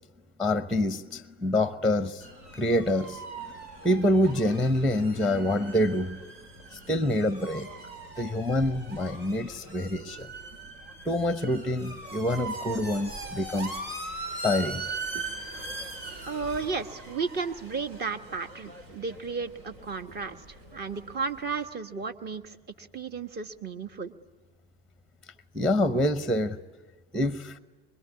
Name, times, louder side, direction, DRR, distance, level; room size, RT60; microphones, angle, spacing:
voice 1, 0.4-3.5 3.8-6.2 6.7-7.7 8.2-10.3 11.0-13.7 14.4-14.9 15.1-15.3 25.5-26.6 27.1-27.6, left 1 dB, ahead, 0.9 m, -26 dB
sound 1, 2.2-21.7, right 3 dB, 70° right, 4.7 m, -41 dB
voice 2, 16.3-20.4 20.7-24.1, right 5 dB, 30° right, 1.5 m, -34 dB
25.0 x 22.5 x 9.6 m
hypercardioid pair, 85°, 31 cm